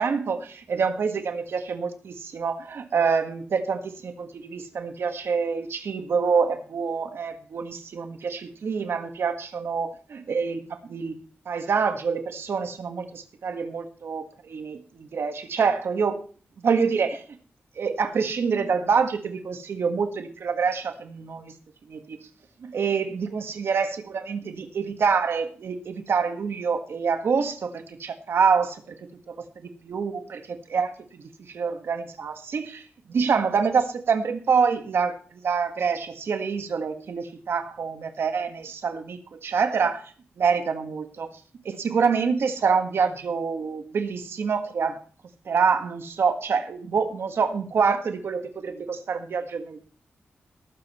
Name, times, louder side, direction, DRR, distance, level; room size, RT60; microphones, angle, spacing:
voice 1, 0.0-11.2 11.5-16.2 16.6-17.2 17.8-21.5 21.9-22.2 22.6-29.0 29.3-29.4 29.8-40.0 40.4-41.3 41.6-45.0 45.5-49.8, right 5 dB, 65° right, 7 dB, 1.7 m, -26 dB
18.5 x 7.6 x 4.4 m, 0.42 s
wide cardioid pair, 130°, 4 cm